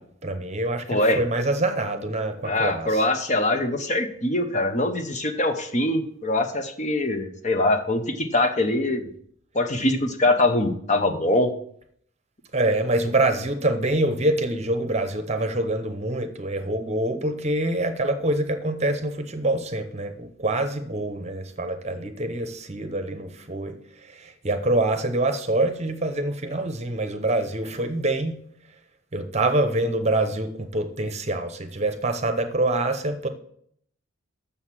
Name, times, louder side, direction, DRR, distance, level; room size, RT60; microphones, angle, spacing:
voice 1, 0.0-2.9 12.5-23.8 24.1-28.3 29.1-33.3, right 2 dB, 30° right, 8 dB, 0.8 m, -25 dB
voice 2, 0.9-1.2 2.4-9.1 9.5-11.5, left 1 dB, 35° left, 7 dB, 0.9 m, -23 dB
7.0 x 6.5 x 7.3 m, 0.66 s
head